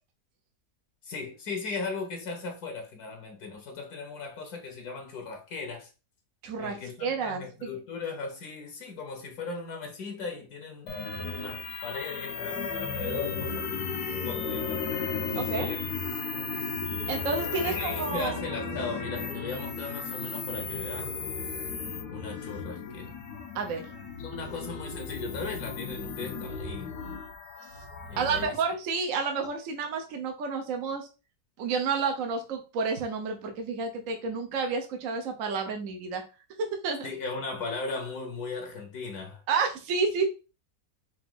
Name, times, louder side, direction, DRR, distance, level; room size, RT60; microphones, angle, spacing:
voice 1, 1.0-5.9 6.6-10.9 11.2-13.8 14.2-14.8 15.3-16.0 17.6-21.2 22.1-23.1 24.2-26.9 28.1-28.6 37.0-39.4, left 4 dB, 70° left, 1.3 m, -37 dB
voice 2, 6.4-7.7 15.4-15.7 17.1-18.4 23.5-23.9 28.2-31.1 31.6-36.2 36.8-37.1 39.5-40.3, right 5 dB, 60° right, 1.1 m, -30 dB
sound 1, 10.9-28.5, left 5 dB, 90° left, 1.4 m, -35 dB
4.9 x 2.6 x 3.8 m
omnidirectional pair, 1.7 m